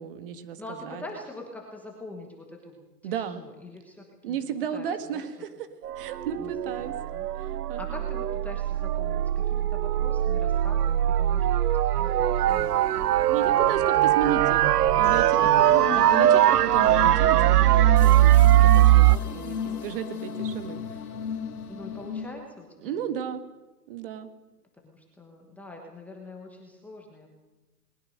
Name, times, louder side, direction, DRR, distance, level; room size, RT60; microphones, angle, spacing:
voice 1, 0.0-1.0 3.0-3.4 4.2-5.5 6.0-6.9 7.7-7.8 13.3-21.0 22.8-23.4 23.9-24.3, right 8 dB, 35° right, 10 dB, 1.7 m, -34 dB
voice 2, 0.6-4.5 4.7-5.3 6.4-6.5 6.8-7.3 7.8-12.9 13.5-13.8 14.1-14.6 18.8-18.9 21.7-23.0 24.8-27.3, left 2 dB, 5° left, 0 dB, 1.2 m, -44 dB
sound 1, 5.8-19.2, right 13 dB, 70° right, 0.6 m, -21 dB
sound 2, 12.5-22.3, left 6 dB, 60° left, 2.5 m, -36 dB
20.5 x 20.5 x 6.5 m, 1.1 s
hypercardioid pair, 160°, 48 cm